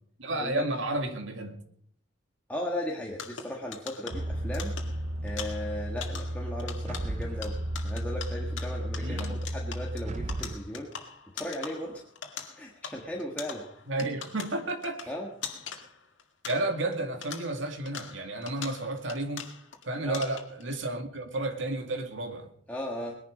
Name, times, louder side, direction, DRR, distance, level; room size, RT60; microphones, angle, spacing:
voice 1, 0.2-1.6 9.0-9.4 13.9-15.1 16.5-19.5 19.9-22.5, right 2 dB, 75° right, 2.1 m, -32 dB
voice 2, 2.5-4.7 5.2-7.6 7.8-11.1 11.3-12.0 12.6-13.6 15.1-15.3 20.1-20.2 22.7-23.2, left 1 dB, 10° left, 1.7 m, -36 dB
sound 1, 3.1-17.0 17.2-19.8 20.1-20.6, left 7 dB, 75° left, 2.1 m, -43 dB
sound 2, 4.1-10.6, right 1 dB, 35° right, 0.6 m, -33 dB
20.0 x 11.0 x 5.1 m
head